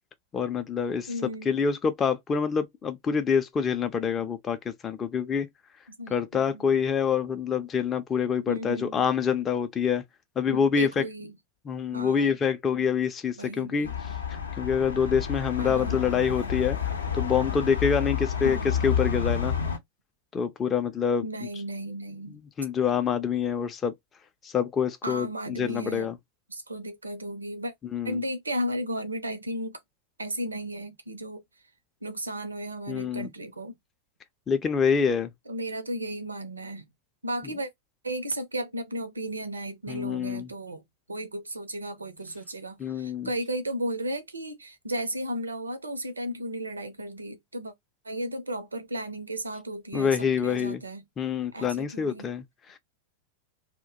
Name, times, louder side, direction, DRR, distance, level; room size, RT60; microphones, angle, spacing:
voice 1, 0.3-1.1 1.5-5.5 6.1-10.0 10.4-11.0 11.6-19.6 20.3-21.2 22.6-23.9 24.4-26.2 27.9-28.2 32.9-33.3 34.5-35.3 39.9-40.5 42.8-43.3 49.9-50.8 51.2-52.8, left 6 dB, 25° left, 0.4 m, -26 dB
voice 2, 1.1-1.5 6.0-6.6 8.5-9.0 10.5-11.3 11.9-12.4 12.7-12.9 13.4-14.0 15.6-16.0 18.4-18.8 21.2-22.4 25.0-26.1 26.5-27.7 28.0-29.8 30.2-31.4 32.0-33.7 35.5-36.8 37.2-37.7 38.0-40.8 41.1-47.7 48.0-51.0 51.5-52.3, right 1 dB, 80° right, 0.5 m, -34 dB
Toulouse Street Ambiance, 13.8-19.8, left 7 dB, 75° left, 0.5 m, -30 dB
2.2 x 2.1 x 2.7 m
figure-of-eight pair, 90°, 0 cm